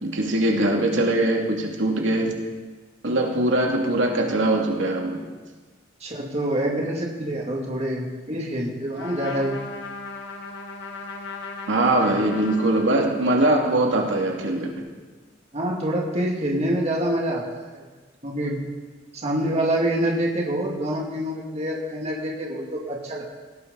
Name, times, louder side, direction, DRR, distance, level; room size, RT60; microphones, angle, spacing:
voice 1, 0.0-2.4 3.0-5.2 11.7-14.7, right 1 dB, 90° right, 0 dB, 2.5 m, -22 dB
voice 2, 6.0-9.6 15.5-17.4 17.7-17.8 18.2-18.6 19.1-23.3, right 1 dB, 35° right, -2 dB, 2.5 m, -26 dB
Trumpet, 8.9-13.5, left 3 dB, 70° left, 2.2 m, -37 dB
18.5 x 17.5 x 4.1 m, 1.3 s
head